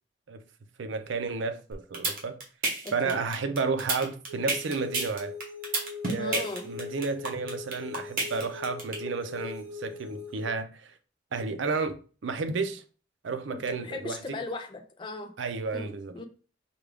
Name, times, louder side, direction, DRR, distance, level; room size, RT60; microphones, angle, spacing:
voice 1, 0.8-2.4 2.9-5.3 6.1-10.9 11.3-12.8 13.2-14.4 15.4-16.2, right 4 dB, 75° right, 0.5 m, -32 dB
sound 1, 1.7-8.9, right 3 dB, 50° right, 1.2 m, -29 dB
voice 2, 2.8-3.2 6.2-6.7 13.5-15.3 15.7-15.9 16.1-16.2, left 3 dB, 25° left, 0.4 m, -37 dB
sound 2, 4.3-10.5, left 5 dB, 30° right, 2.0 m, -41 dB
4.8 x 2.3 x 3.4 m
head